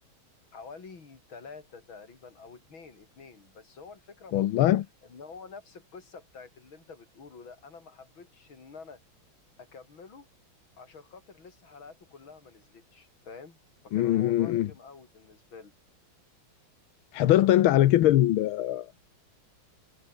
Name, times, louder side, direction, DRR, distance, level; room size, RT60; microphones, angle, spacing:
voice 1, 0.5-4.7 5.0-9.0 9.6-10.3 10.8-15.7, left 5 dB, 70° left, 4.2 m, -48 dB
voice 2, 4.3-4.8 13.9-14.7 17.1-18.9, left 13 dB, 90° left, 1.7 m, -22 dB
omnidirectional pair, 2.2 m